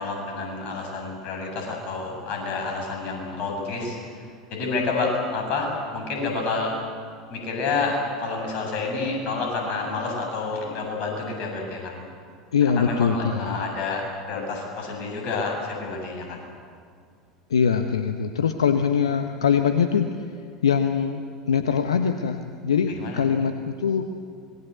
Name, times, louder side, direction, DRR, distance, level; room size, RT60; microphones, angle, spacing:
voice 1, 0.0-6.8 7.3-12.0 12.8-16.4 22.9-23.2, left 3 dB, 50° left, 1 dB, 7.8 m, -29 dB
voice 2, 12.5-13.6 17.5-20.1 20.6-24.1, left 7 dB, 80° left, 7 dB, 1.1 m, -23 dB
26.0 x 21.0 x 8.2 m, 2.2 s
figure-of-eight pair, 80°, 3 cm